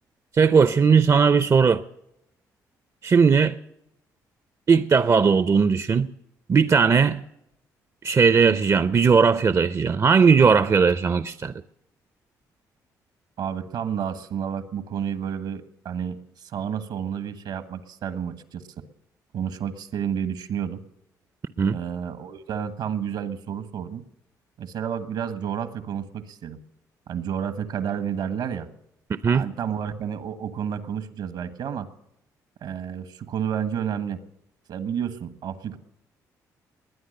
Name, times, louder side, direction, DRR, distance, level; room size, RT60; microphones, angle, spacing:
voice 1, 0.3-1.8 3.0-3.6 4.7-6.1 6.5-7.2 8.0-11.5 21.6-21.8 29.2-29.4, right 5 dB, 40° right, 0.6 m, -18 dB
voice 2, 13.4-16.2 16.4-18.6 19.3-20.8 21.7-24.0 24.6-26.6 27.1-28.7 29.3-31.9 32.6-34.2 34.7-35.8, right 8 dB, 70° right, 1.4 m, -30 dB
21.0 x 9.8 x 6.6 m
supercardioid pair, 60°, 8 cm